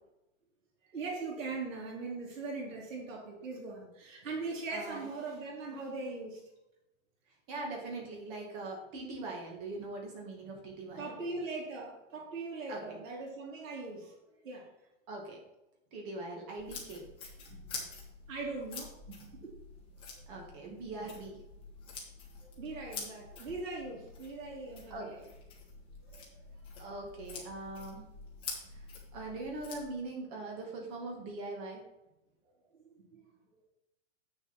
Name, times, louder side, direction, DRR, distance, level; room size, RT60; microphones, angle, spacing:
voice 1, 0.9-6.4 11.0-14.7 17.5-17.9 18.3-19.5 20.6-21.2 22.4-25.2 26.1-26.2 32.9-33.2, right 3 dB, 90° right, -7 dB, 3.2 m, -41 dB
voice 2, 4.7-5.1 7.5-11.2 12.7-13.0 15.1-15.4 15.9-17.1 20.3-21.4 24.9-25.3 26.8-28.0 29.1-31.8, right 2 dB, 30° right, 0 dB, 2.1 m, -41 dB
sound 1, 16.6-29.8, left 4 dB, 15° left, 1.5 m, -47 dB
8.3 x 6.7 x 4.4 m, 0.91 s
supercardioid pair, 170°, 38 cm